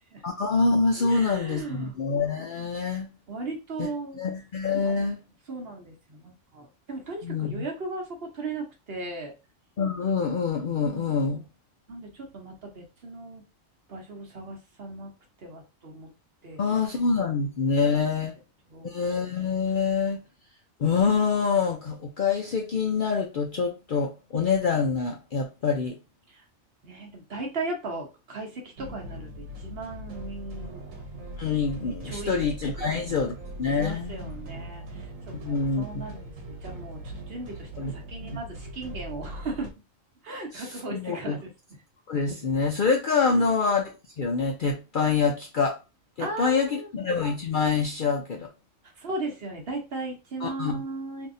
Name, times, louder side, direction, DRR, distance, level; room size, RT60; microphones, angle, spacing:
voice 1, 0.2-3.1 4.2-5.2 7.2-7.6 9.8-11.4 16.6-18.3 18.8-20.2 20.8-26.0 31.4-34.3 35.3-36.0 37.8-37.9 40.5-40.7 40.9-41.3 42.1-43.9 44.2-45.8 46.2-48.5 50.4-50.8, left 5 dB, 60° left, 0.5 m, -26 dB
voice 2, 1.0-1.9 3.3-4.2 4.8-5.1 5.5-9.3 10.9-11.4 11.9-13.4 13.9-15.1 15.4-16.1 16.4-16.9 18.7-18.9 26.3-26.4 26.8-30.8 32.0-32.4 32.7-33.1 33.7-39.7 40.2-41.5 43.2-43.5 46.2-46.9 49.0-51.3, right 2 dB, 50° right, 1.1 m, -37 dB
sound 1, 28.8-39.7, right 1 dB, 90° right, 1.2 m, -40 dB
3.9 x 2.7 x 2.6 m
omnidirectional pair, 1.3 m